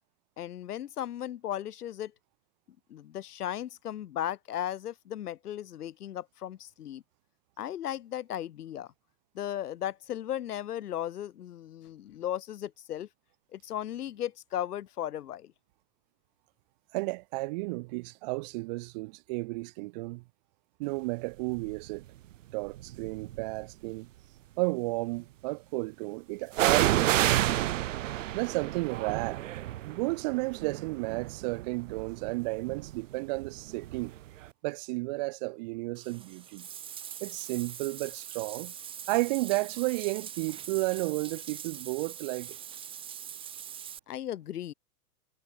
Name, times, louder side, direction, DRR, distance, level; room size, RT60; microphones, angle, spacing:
voice 1, 0.4-2.1 2.9-7.0 7.6-8.9 9.3-13.1 13.5-15.5 44.1-44.7, left 11 dB, 70° left, 3.8 m, -36 dB
voice 2, 16.9-20.2 20.8-22.0 22.5-24.1 24.6-27.7 28.3-29.4 29.8-34.1 34.6-36.7 37.2-38.7 39.1-42.6, right 25 dB, 25° right, 1.2 m, -33 dB
sound 1, 21.6-21.9 22.7-23.6 26.5-34.2 34.4-34.5, right 14 dB, 50° right, 2.5 m, -30 dB
Bathtub (filling or washing), 35.9-44.0, right 9 dB, 10° right, 1.7 m, -43 dB
supercardioid pair, 175°, 47 cm